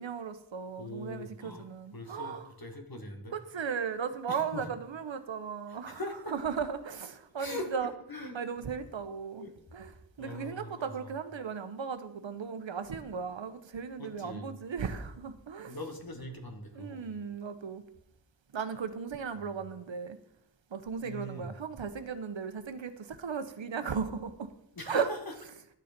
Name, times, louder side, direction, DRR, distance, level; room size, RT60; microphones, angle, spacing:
voice 1, 0.0-2.5 3.3-6.0 6.3-7.9 8.3-9.9 10.2-15.8 16.7-17.8 18.5-20.2 20.7-24.5 24.9-25.1, right 6 dB, 85° right, 1.0 m, -36 dB
voice 2, 0.8-1.7 1.9-3.4 4.3-4.6 5.7-6.3 7.4-8.4 9.4-9.5 10.2-11.1 14.0-14.5 15.7-17.1 21.0-21.5 24.8-25.3, left 1 dB, 50° left, 1.9 m, -41 dB
11.5 x 6.9 x 5.2 m
wide cardioid pair, 50°, 44 cm